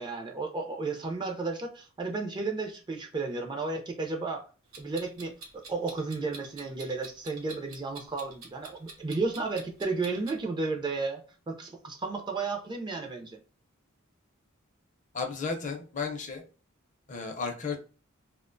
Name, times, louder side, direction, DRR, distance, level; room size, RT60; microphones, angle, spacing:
voice 1, 0.0-4.5 4.8-11.2 11.5-13.4, right 3 dB, 20° right, 0.3 m, -33 dB
Clock, 4.7-10.4, right 3 dB, 85° right, 0.7 m, -47 dB
voice 2, 15.1-16.4 17.1-17.8, left 4 dB, 35° left, 0.5 m, -33 dB
2.4 x 2.1 x 2.4 m
head